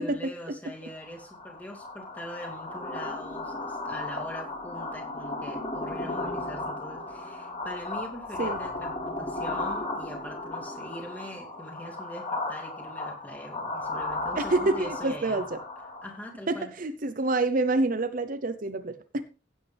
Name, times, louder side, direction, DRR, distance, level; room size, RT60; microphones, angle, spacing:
voice 1, 0.0-15.4 16.0-16.7, equal, 10° left, 2.6 m, -42 dB
sound 1, 1.0-16.3, left 2 dB, 35° left, 5.6 m, -35 dB
voice 2, 14.4-15.6 16.5-19.2, right 2 dB, 45° right, 0.7 m, -27 dB
16.0 x 8.4 x 3.4 m
head